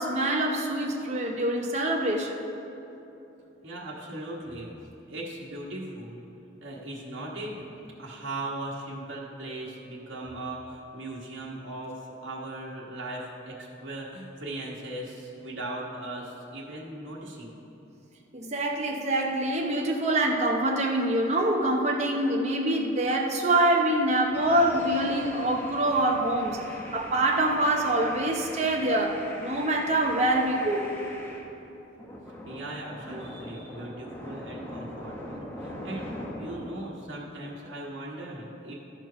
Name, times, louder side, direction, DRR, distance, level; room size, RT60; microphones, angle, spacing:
voice 1, 0.0-2.4 18.3-26.6 26.9-30.9, right 1 dB, 35° right, 0 dB, 0.8 m, -25 dB
voice 2, 3.6-4.7 5.1-6.2 6.6-7.6 8.0-17.5 32.4-36.1 36.4-38.7, right 1 dB, 80° right, -5 dB, 1.4 m, -38 dB
sound 1, 24.3-31.5 31.9-36.8, left 1 dB, 10° left, 0.9 m, -41 dB
13.0 x 4.5 x 5.6 m, 3.0 s
head